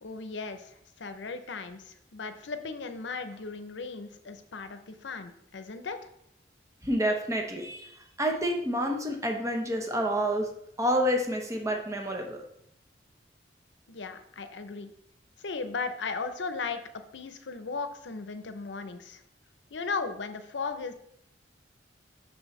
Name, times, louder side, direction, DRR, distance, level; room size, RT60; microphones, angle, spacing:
voice 1, 0.0-6.0 13.9-14.9 15.4-16.8 17.1-19.2 19.7-20.9, left 4 dB, 80° left, 9 dB, 0.6 m, -36 dB
voice 2, 6.8-10.5 10.8-12.4, equal, 15° right, 2 dB, 0.9 m, -28 dB
6.3 x 6.1 x 3.2 m, 0.71 s
head